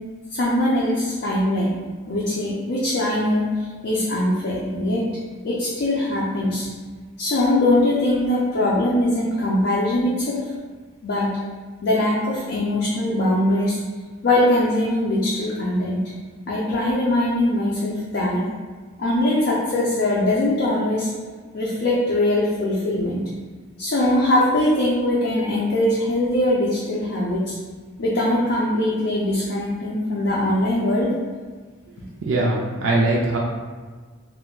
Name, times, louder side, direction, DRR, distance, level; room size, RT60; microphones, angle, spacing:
voice 1, 0.3-1.7 2.1-3.4 3.8-5.0 5.4-6.7 7.2-10.4 11.0-11.3 11.8-13.8 14.2-16.0 16.5-18.4 19.0-21.1 21.5-23.2 23.8-27.5 28.0-31.1, left 1 dB, 60° left, -6 dB, 0.4 m, -21 dB
voice 2, 32.2-33.4, right 2 dB, 65° right, -3 dB, 0.4 m, -21 dB
2.3 x 2.1 x 3.6 m, 1.5 s
head